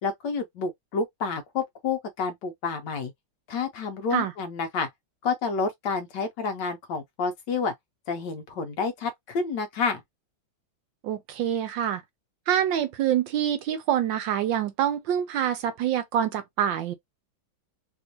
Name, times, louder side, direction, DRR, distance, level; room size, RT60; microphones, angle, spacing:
voice 1, 0.0-3.1 3.5-4.9 5.2-7.7 8.1-10.0, left 5 dB, 65° left, 1.3 m, -29 dB
voice 2, 11.0-12.0 12.5-16.9, right 10 dB, 75° right, 1.2 m, -26 dB
3.5 x 2.5 x 2.8 m
omnidirectional pair, 2.2 m